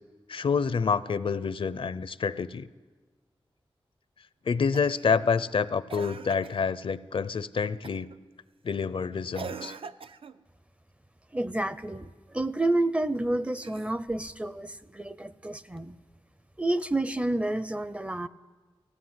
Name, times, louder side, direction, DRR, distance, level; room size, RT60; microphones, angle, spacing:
voice 1, 0.3-2.7 4.5-8.1 8.6-9.7, left 5 dB, 65° left, 15 dB, 0.6 m, -28 dB
Cough, 4.7-5.1 5.9-6.7 7.8-8.2 9.3-10.4 13.5-14.3 15.8-15.9, right 6 dB, 70° right, 0.6 m, -42 dB
voice 2, 11.3-16.0 16.6-18.3, right 2 dB, 15° right, 15 dB, 0.5 m, -29 dB
17.5 x 15.5 x 9.5 m, 1.4 s
wide cardioid pair, 120°, 10 cm